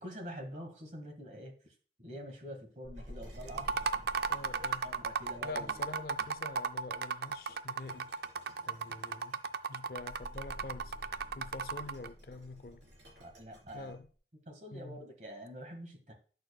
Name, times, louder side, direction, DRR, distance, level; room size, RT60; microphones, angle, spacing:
voice 1, 0.0-3.7 4.3-5.9 13.2-13.9 14.5-16.1, equal, 45° right, 1.5 m, -46 dB
sound 1, 2.8-7.2 10.0-14.1, equal, 35° left, 1.1 m, -51 dB
sound 2, 2.9-6.6 7.3-13.9, equal, 85° right, 3.6 m, -60 dB
sound 3, 3.5-12.1, right 6 dB, 60° right, 0.3 m, -35 dB
voice 2, 4.3-4.9 5.4-8.1 8.7-9.3 9.7-12.8 13.7-14.1 14.7-15.0, left 3 dB, 55° left, 0.5 m, -46 dB
9.4 x 6.5 x 2.2 m
head